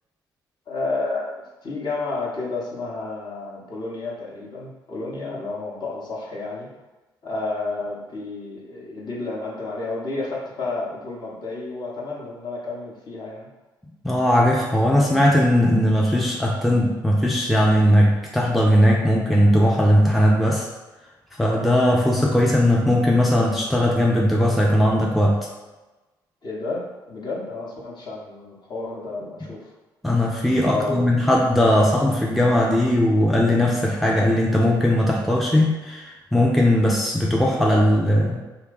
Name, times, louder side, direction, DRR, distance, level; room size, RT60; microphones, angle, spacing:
voice 1, 0.7-6.7 7.2-13.5 26.4-29.7 30.7-31.2, left 3 dB, 40° left, -4 dB, 0.9 m, -31 dB
voice 2, 14.0-20.7 21.4-25.4 29.4-29.5 30.0-38.4, left 1 dB, ahead, -3 dB, 0.4 m, -19 dB
2.6 x 2.2 x 3.9 m, 1.1 s
figure-of-eight pair, 45°, 11 cm